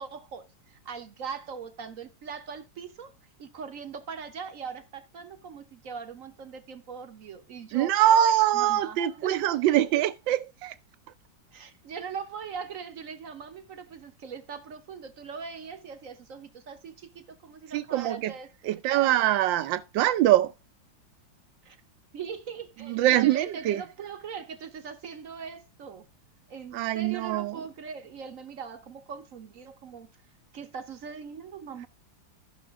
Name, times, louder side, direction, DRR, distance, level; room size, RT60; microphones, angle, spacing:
voice 1, 0.0-3.1 3.4-9.4 9.8-9.9 11.5-19.1 21.6-21.8 22.1-26.1 26.5-30.1 30.5-31.9, right 6 dB, 55° right, 1.1 m, -40 dB
voice 2, 7.7-10.7 17.7-18.3 18.6-20.5 22.8-23.8 26.7-27.7, right 12 dB, 75° right, 1.4 m, -24 dB
14.0 x 5.9 x 3.5 m
omnidirectional pair, 2.1 m